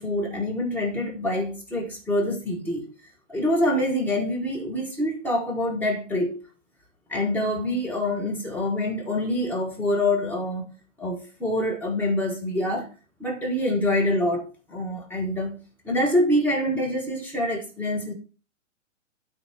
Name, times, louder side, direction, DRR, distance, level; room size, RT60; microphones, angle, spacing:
voice 1, 0.0-2.9 3.3-6.4 7.1-10.7 11.0-12.9 13.2-18.1, left 1 dB, 5° left, 1.6 m, -26 dB
8.8 x 4.3 x 6.1 m
figure-of-eight pair, 115°, 37 cm